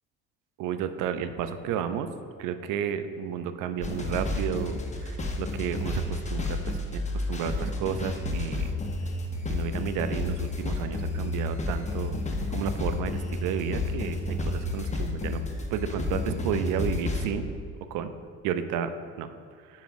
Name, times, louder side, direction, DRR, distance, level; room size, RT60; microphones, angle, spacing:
voice 1, 0.6-2.1 2.4-4.8 5.0-7.0 7.3-8.7 9.5-12.1 12.5-15.4 15.7-17.5 17.9-18.1 18.4-18.9 19.2-19.3, right 8 dB, 60° right, 10 dB, 0.6 m, -32 dB
sound 1, 3.8-17.3, left 2 dB, 20° left, 1.0 m, -31 dB
9.8 x 5.1 x 2.6 m, 2.1 s
hypercardioid pair, 60°, 35 cm